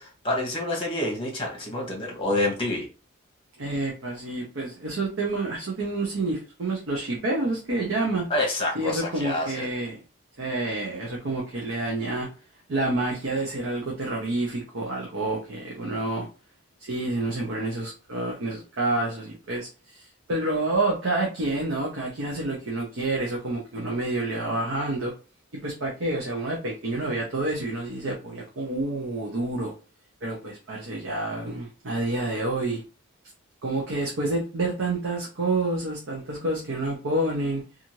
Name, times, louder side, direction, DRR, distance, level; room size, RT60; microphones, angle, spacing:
voice 1, 0.0-2.9 8.3-9.7, left 1 dB, 25° left, 1.0 m, -28 dB
voice 2, 3.6-8.3 8.7-10.0 10.4-12.3 12.7-16.3 16.8-25.1 25.5-29.7 30.2-32.8 33.6-37.6, right 2 dB, 65° right, 0.6 m, -28 dB
2.6 x 2.4 x 2.9 m
head